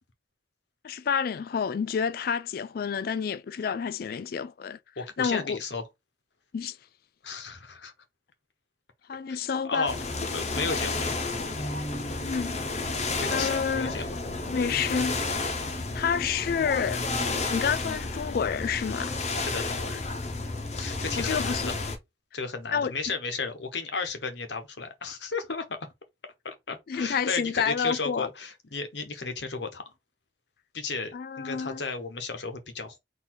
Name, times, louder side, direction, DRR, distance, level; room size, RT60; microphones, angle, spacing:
voice 1, 0.8-4.8 5.2-5.6 6.5-6.8 9.1-9.9 12.2-12.6 13.3-14.0 14.5-15.1 15.9-17.0 17.5-19.1 21.2-21.7 22.7-22.9 26.9-28.3 31.1-31.8, left 6 dB, 55° left, 0.3 m, -29 dB
voice 2, 5.0-5.8 7.2-7.9 9.6-9.9 10.3-11.1 13.2-14.1 19.4-20.0 20.7-21.8 22.3-25.8 26.4-29.8 30.7-33.0, left 4 dB, 70° left, 1.1 m, -34 dB
sound 1, 9.9-22.0, left 3 dB, 40° left, 0.9 m, -31 dB
4.0 x 2.7 x 4.4 m
head